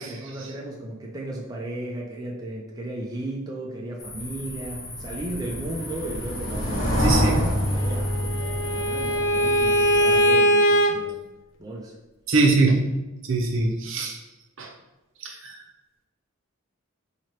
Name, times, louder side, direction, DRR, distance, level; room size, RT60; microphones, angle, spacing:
voice 1, 0.0-11.2 11.6-11.9, right 1 dB, 15° right, -2 dB, 0.4 m, -35 dB
sound 1, 4.0-10.3, equal, 75° left, 1.1 m, -27 dB
voice 2, 7.0-7.5 12.3-12.8 13.3-14.2 14.6-14.7 15.2-15.6, right 3 dB, 65° right, 1 dB, 0.7 m, -22 dB
Bowed string instrument, 7.8-10.9, equal, 60° left, 0.4 m, -21 dB
4.3 x 2.8 x 3.0 m, 1.1 s
head